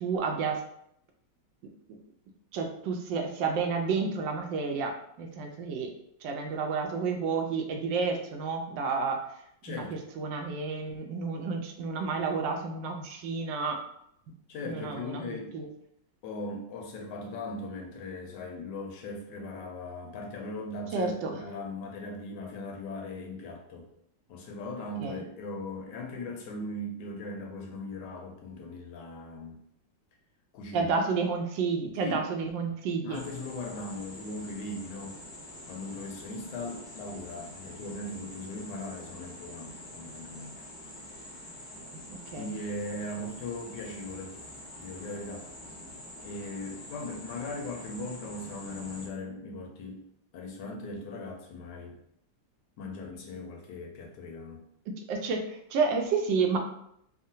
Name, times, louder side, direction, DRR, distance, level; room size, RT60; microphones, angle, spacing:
voice 1, 0.0-0.6 1.9-2.0 2.5-5.9 6.2-9.2 9.7-9.8 10.2-13.8 14.7-15.7 20.9-21.3 25.0-25.2 30.7-33.2 41.8-42.5 55.1-56.6, right 5 dB, 80° right, 3 dB, 1.2 m, -30 dB
voice 2, 9.6-10.0 14.5-15.5 16.2-23.9 24.3-29.6 30.5-30.9 32.0-32.3 33.0-35.2 35.7-40.6 41.0-41.6 42.3-44.4 44.8-45.5 46.2-50.1 50.3-52.0 52.8-54.7, left 2 dB, 75° left, 2 dB, 1.1 m, -39 dB
sound 1, 33.1-49.1, left 1 dB, 55° left, 0.5 m, -46 dB
3.7 x 2.1 x 2.6 m, 0.72 s
omnidirectional pair, 2.0 m